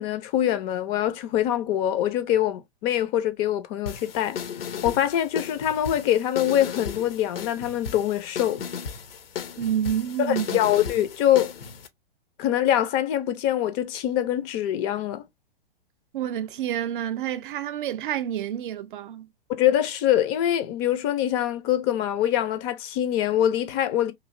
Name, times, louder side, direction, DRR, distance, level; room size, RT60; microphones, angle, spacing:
voice 1, 0.0-4.4 4.8-8.6 10.2-11.5 12.4-15.2 19.6-24.1, left 11 dB, 30° left, 0.5 m, -24 dB
sound 1, 3.9-11.9, left 7 dB, 75° left, 0.8 m, -35 dB
voice 2, 9.6-10.6 16.1-19.3, right 10 dB, 60° right, 0.6 m, -28 dB
3.2 x 2.6 x 2.5 m
hypercardioid pair, 115°, 30 cm